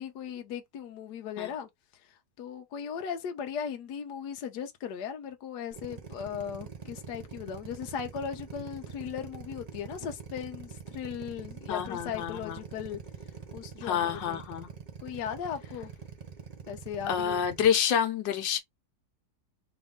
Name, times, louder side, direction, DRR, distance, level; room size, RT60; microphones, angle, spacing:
voice 1, 0.0-1.7 2.4-13.0 13.5-14.4 15.0-15.9 16.7-17.4, left 8 dB, 70° left, 1.3 m, -37 dB
Drill, 5.7-17.7, right 6 dB, 70° right, 0.3 m, -44 dB
voice 2, 11.7-12.6 13.8-14.7 17.1-18.6, left 8 dB, 90° left, 1.5 m, -28 dB
4.0 x 2.6 x 3.5 m
omnidirectional pair, 1.9 m